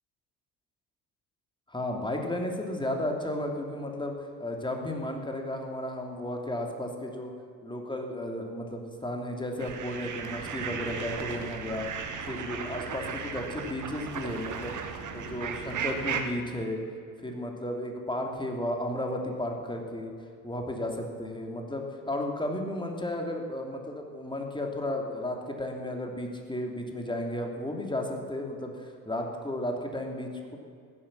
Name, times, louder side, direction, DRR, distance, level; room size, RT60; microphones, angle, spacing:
voice 1, 1.7-4.1 4.4-7.3 7.6-11.9 12.2-14.8 15.1-16.8 17.2-20.1 20.4-30.6, left 1 dB, 10° left, 2 dB, 3.0 m, -33 dB
sound 1, 9.6-16.2, right 6 dB, 35° right, 1.9 m, -36 dB
16.0 x 12.0 x 7.6 m, 2.3 s
figure-of-eight pair, 65°, 50 cm